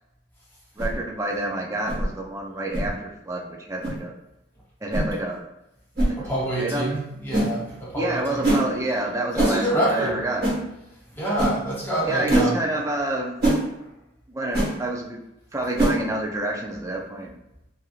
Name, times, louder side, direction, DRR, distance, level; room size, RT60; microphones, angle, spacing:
voice 1, 0.8-4.1 4.8-5.4 6.1-6.3 6.6-6.9 8.0-10.4 12.0-13.4 14.3-15.2 15.5-17.3, right 1 dB, 15° right, 0 dB, 0.3 m, -28 dB
sound 1, 0.8-1.0 1.9-2.0 2.7-2.9 3.8-4.0 4.9-5.1 6.0-6.1 7.3-7.5 8.4-8.6 9.4-9.6 10.4-10.6 11.4-11.5 12.3-12.5 13.4-13.6 14.5-14.7 15.8-16.0, right 1 dB, 50° right, 1.2 m, -22 dB
voice 2, 6.2-8.5 9.3-10.2 11.1-12.6, right 1 dB, 10° left, -6 dB, 0.8 m, -26 dB
2.9 x 2.6 x 2.4 m, 0.89 s
head